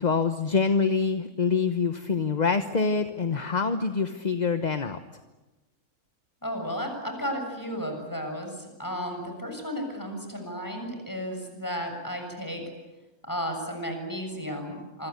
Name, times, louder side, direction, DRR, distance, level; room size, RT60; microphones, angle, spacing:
voice 1, 0.0-5.0, left 5 dB, 30° left, 9 dB, 1.1 m, -25 dB
voice 2, 6.4-12.6 13.2-15.1, equal, 10° left, 3 dB, 7.1 m, -33 dB
27.5 x 25.5 x 8.3 m, 1.1 s
omnidirectional pair, 1.6 m